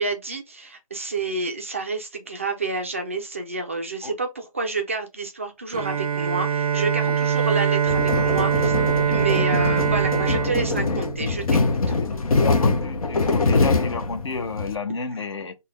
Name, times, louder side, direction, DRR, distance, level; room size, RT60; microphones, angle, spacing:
voice 1, 0.0-8.7 9.1-11.9, right 3 dB, 25° right, 0.3 m, -29 dB
Bowed string instrument, 5.7-11.7, right 7 dB, 85° right, 0.5 m, -23 dB
sound 1, 7.9-14.7, left 3 dB, 80° left, 0.8 m, -23 dB
voice 2, 11.9-15.5, left 4 dB, 50° left, 0.7 m, -31 dB
3.9 x 2.2 x 3.3 m
hypercardioid pair, 165°, 18 cm